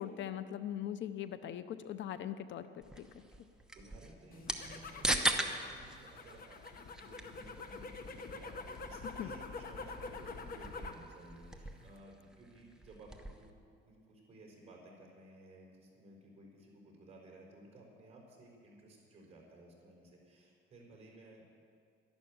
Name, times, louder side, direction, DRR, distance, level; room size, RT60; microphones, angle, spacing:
voice 1, 0.0-3.1 9.2-9.3, left 10 dB, 65° left, 12 dB, 0.7 m, -41 dB
sound 1, 2.8-13.5, right 1 dB, 5° right, 1.0 m, -41 dB
voice 2, 3.7-13.5 13.8-21.4, right 1 dB, 30° right, -1 dB, 4.6 m, -56 dB
sound 2, 4.3-11.1 11.4-12.0, left 4 dB, 45° left, 1.2 m, -46 dB
12.0 x 11.5 x 8.7 m, 2.3 s
cardioid pair, 140°, 20 cm